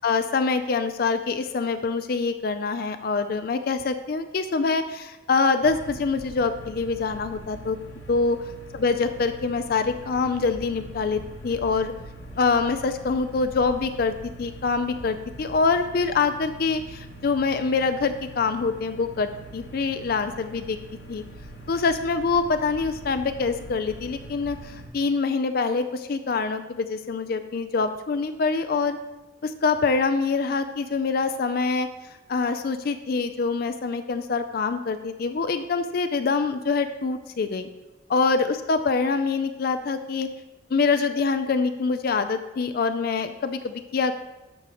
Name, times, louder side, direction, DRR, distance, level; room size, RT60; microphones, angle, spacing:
voice 1, 0.0-7.8 8.1-8.4 8.7-11.9 12.4-20.8 21.1-21.2 21.7-29.0 29.4-31.9 32.3-37.7 38.1-40.3 40.7-44.1, left 4 dB, 50° left, 9 dB, 0.4 m, -25 dB
sound 1, 5.6-24.9, right 2 dB, 80° left, 2.0 m, -43 dB
11.5 x 6.4 x 3.0 m, 1.0 s
head